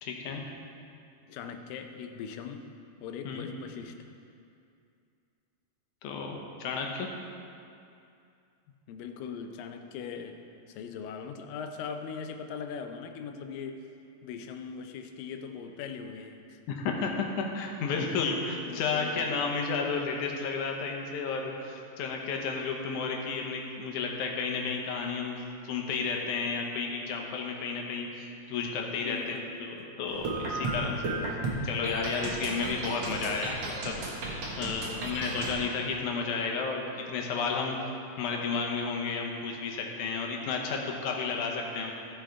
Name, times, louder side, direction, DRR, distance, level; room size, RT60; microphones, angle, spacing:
voice 1, 0.0-0.4 3.2-3.5 6.0-7.1 16.7-25.4 25.6-31.1 31.6-33.5 33.8-34.1 34.6-37.9 38.2-41.9, left 5 dB, 70° left, 1 dB, 2.2 m, -32 dB
voice 2, 1.3-2.7 3.0-4.0 8.9-13.9 14.2-16.6 18.7-19.4 29.0-29.9 31.0-31.6 34.6-35.1, left 6 dB, 85° left, 6 dB, 2.4 m, -41 dB
rainbow battle, 30.1-35.6, right 2 dB, 55° right, 2.1 m, -34 dB
15.0 x 5.1 x 4.6 m, 2.5 s
omnidirectional pair, 3.9 m